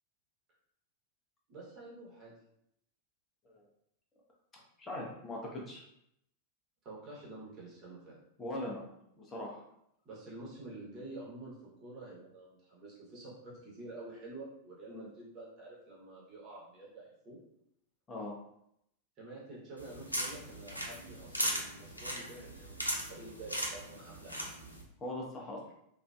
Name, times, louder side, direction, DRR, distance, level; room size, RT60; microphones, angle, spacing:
voice 1, 1.5-2.3 6.8-8.2 10.0-17.4 19.2-24.5, right 2 dB, 35° right, -5 dB, 1.1 m, -48 dB
voice 2, 4.5-5.8 8.4-8.8 9.2-9.6 14.9-15.1 18.1-18.3 25.0-25.6, left 1 dB, 20° left, -2 dB, 0.7 m, -41 dB
sound 1, 19.8-24.8, equal, 90° left, 0.4 m, -38 dB
2.5 x 2.4 x 2.3 m, 0.75 s
figure-of-eight pair, 90°, 0 cm